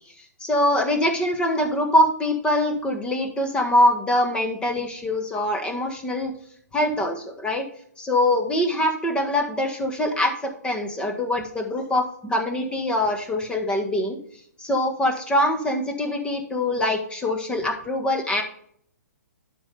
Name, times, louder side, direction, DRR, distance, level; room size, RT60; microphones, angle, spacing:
voice 1, 0.4-6.3 6.7-7.6 8.0-14.2 14.6-18.4, left 1 dB, 10° left, 3 dB, 1.6 m, -23 dB
11.5 x 5.5 x 3.5 m, 0.62 s
figure-of-eight pair, 125°, 9 cm